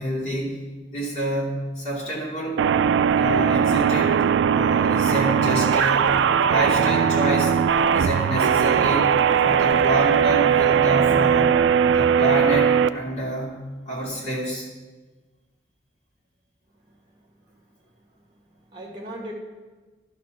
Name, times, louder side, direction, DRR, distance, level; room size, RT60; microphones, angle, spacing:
voice 1, 0.0-2.6 3.2-6.2 6.5-7.6 7.9-9.1 9.4-11.6 11.9-14.7, right 1 dB, 40° left, -5 dB, 2.7 m, -27 dB
sound 1, 2.6-12.9, right 7 dB, 80° right, 0.3 m, -19 dB
voice 2, 17.5-19.3, right 1 dB, 25° right, 0 dB, 1.7 m, -41 dB
11.5 x 4.2 x 6.0 m, 1.3 s
head